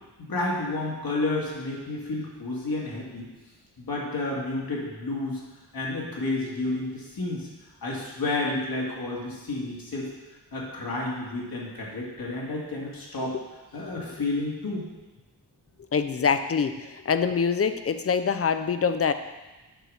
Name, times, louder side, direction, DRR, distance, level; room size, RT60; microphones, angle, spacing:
voice 1, 0.2-3.3 3.8-5.4 5.7-7.5 7.8-10.1 10.5-13.4 13.7-14.8, left 2 dB, 60° left, -3 dB, 2.3 m, -30 dB
voice 2, 15.9-19.1, left 6 dB, 35° left, 10 dB, 0.5 m, -25 dB
9.1 x 5.0 x 6.4 m, 1.1 s
wide cardioid pair, 150°, 40 cm